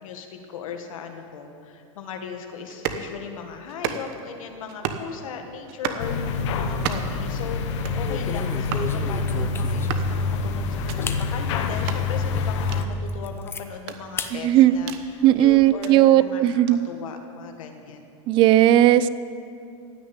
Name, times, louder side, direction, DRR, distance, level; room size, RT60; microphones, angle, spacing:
voice 1, 0.0-7.6 7.9-18.1, left 6 dB, 85° left, 5 dB, 1.7 m, -37 dB
sound 1, 2.7-3.1 3.7-4.3 4.7-5.1 5.7-6.1 6.7-7.2 7.7-8.0 8.7-8.9 9.7-10.1 10.7-11.0 11.7-12.0 12.7-12.8 13.7-15.0 15.6-15.9 16.7-16.8, right 9 dB, 50° right, 1.0 m, -33 dB
sound 2, 6.0-12.8, left 4 dB, 60° left, 1.2 m, -26 dB
sound 3, 7.4-7.5 8.0-10.1 10.6-10.7 11.0-11.3 11.8-11.9 12.4-12.5 12.8-13.6 14.2-14.3 14.7-15.7, left 5 dB, 15° left, 0.6 m, -34 dB
voice 2, 14.3-14.8 15.2-16.8 18.3-19.1, right 13 dB, 30° right, 15 dB, 0.4 m, -16 dB
15.5 x 6.5 x 9.7 m, 2.5 s
supercardioid pair, 155°, 17 cm